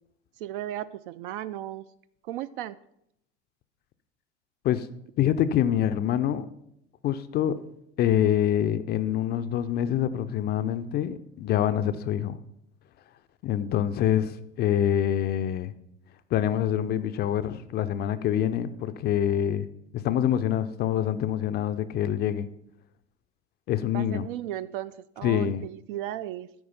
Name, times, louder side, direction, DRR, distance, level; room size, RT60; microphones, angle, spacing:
voice 1, 0.4-1.9 2.2-2.8 23.9-26.5, right 13 dB, 50° right, 0.4 m, -35 dB
voice 2, 5.2-6.5 7.0-7.6 8.0-12.4 13.4-15.7 16.3-19.7 19.9-22.5 23.7-24.2 25.2-25.6, left 10 dB, 30° left, 0.5 m, -25 dB
12.5 x 4.7 x 5.4 m
figure-of-eight pair, 70°, 35 cm